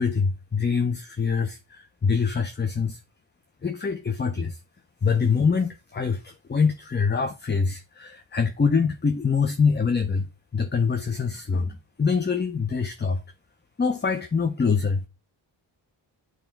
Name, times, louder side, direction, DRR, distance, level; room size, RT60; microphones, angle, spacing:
voice 1, 0.0-3.0 3.6-4.6 5.0-10.3 10.5-13.2 13.8-15.0, left 5 dB, 20° left, 0.7 m, -24 dB
9.0 x 3.1 x 4.5 m
cardioid pair, 75°, 49 cm